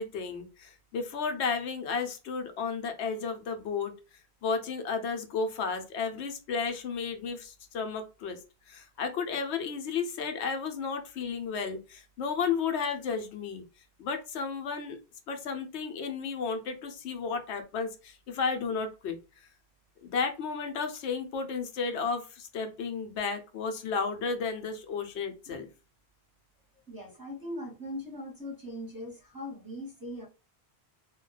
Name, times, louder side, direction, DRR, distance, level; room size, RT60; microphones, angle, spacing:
voice 1, 0.0-3.9 4.4-8.4 8.7-13.6 14.0-15.0 15.3-19.2 20.0-25.7, left 5 dB, 80° left, 0.9 m, -33 dB
voice 2, 26.9-30.3, left 1 dB, 20° right, 0.7 m, -40 dB
2.3 x 2.2 x 3.8 m
omnidirectional pair, 1.1 m